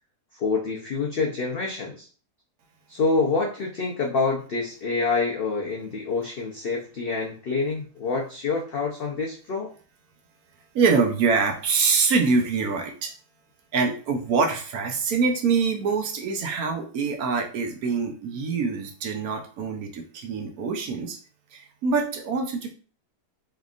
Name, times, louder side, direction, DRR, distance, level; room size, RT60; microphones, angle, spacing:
voice 1, 0.3-2.1 2.9-9.7, left 4 dB, 75° left, -2 dB, 0.5 m, -27 dB
voice 2, 10.7-13.1 13.7-21.2 21.5-22.7, right 5 dB, 70° right, 3 dB, 1.1 m, -24 dB
3.6 x 3.4 x 2.4 m, 0.41 s
omnidirectional pair, 1.8 m